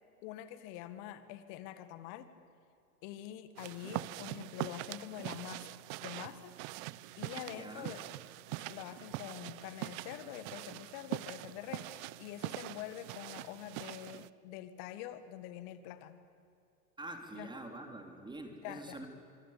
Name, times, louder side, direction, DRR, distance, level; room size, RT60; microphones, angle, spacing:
voice 1, 0.2-2.3 3.0-6.5 7.2-8.1 8.6-16.2 17.3-17.5 18.6-19.1, left 12 dB, 50° left, 11 dB, 2.1 m, -45 dB
sound 1, 3.6-14.3, right 19 dB, 45° right, 0.8 m, -43 dB
voice 2, 7.5-8.0 17.0-19.1, right 2 dB, 10° right, 4 dB, 3.1 m, -46 dB
25.0 x 24.5 x 8.6 m, 2.6 s
hypercardioid pair, 105°, 47 cm